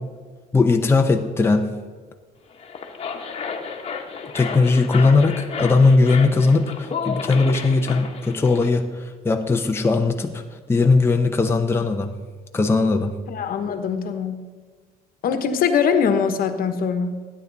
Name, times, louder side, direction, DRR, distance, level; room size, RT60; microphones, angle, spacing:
voice 1, 0.5-1.8 4.3-12.2 12.5-13.2, left 3 dB, 15° left, 4 dB, 0.8 m, -19 dB
sound 1, 2.5-8.7, left 5 dB, 35° left, 1.4 m, -32 dB
voice 2, 13.3-14.4 15.2-17.2, left 6 dB, 60° left, 8 dB, 1.2 m, -22 dB
15.5 x 9.8 x 4.1 m, 1.5 s
cardioid pair, 110°, 17 cm